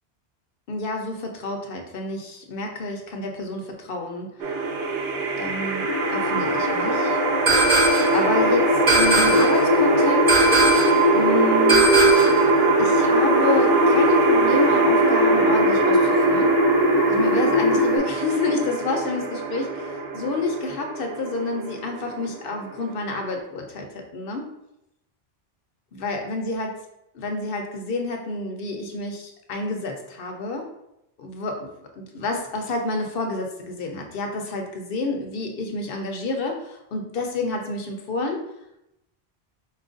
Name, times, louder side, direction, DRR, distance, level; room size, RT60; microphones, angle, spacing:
voice 1, 0.7-4.6 5.4-7.2 7.8-10.3 11.1-11.9 12.8-16.6 17.1-24.5 26.0-26.7 27.1-30.7 31.2-31.7 31.9-38.4, left 2 dB, 60° left, 3 dB, 0.9 m, -29 dB
sound 1, 4.4-23.4, right 4 dB, 80° right, 0.9 m, -23 dB
sound 2, 5.9-18.0, left 2 dB, 25° left, 0.6 m, -22 dB
sound 3, 7.5-8.2 8.9-9.6 10.3-11.0 11.7-12.4, right 2 dB, 45° right, 0.8 m, -20 dB
4.3 x 2.4 x 3.8 m, 0.84 s
omnidirectional pair, 1.1 m